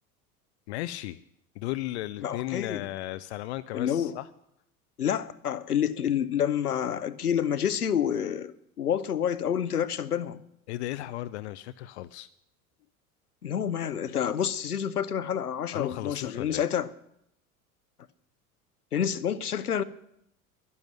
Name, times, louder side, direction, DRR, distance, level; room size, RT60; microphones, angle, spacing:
voice 1, 0.7-1.2 1.6-4.3 10.7-12.3 15.7-16.6, left 16 dB, 50° left, 0.5 m, -35 dB
voice 2, 2.2-2.9 3.7-4.1 5.0-10.4 13.4-16.9 18.9-19.8, left 9 dB, 80° left, 0.7 m, -28 dB
11.5 x 11.0 x 7.7 m
figure-of-eight pair, 75°, 45 cm